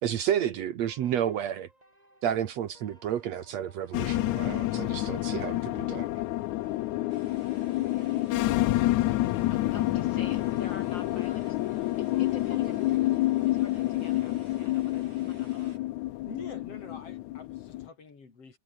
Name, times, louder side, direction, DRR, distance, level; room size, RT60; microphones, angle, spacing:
voice 1, 0.0-1.7 2.2-6.1, right 10 dB, 65° right, 2.4 m, -31 dB
sound 1, 0.9-15.9, right 1 dB, 10° right, 6.8 m, -60 dB
sound 2, 3.9-17.9, left 16 dB, 85° left, 2.2 m, -28 dB
sound 3, 7.1-15.8, right 2 dB, 40° right, 8.3 m, -59 dB
voice 2, 9.5-11.6 12.0-13.2 13.4-15.8, left 3 dB, 40° left, 6.4 m, -46 dB
voice 3, 16.3-18.6, left 4 dB, 55° left, 5.2 m, -45 dB
omnidirectional pair, 3.3 m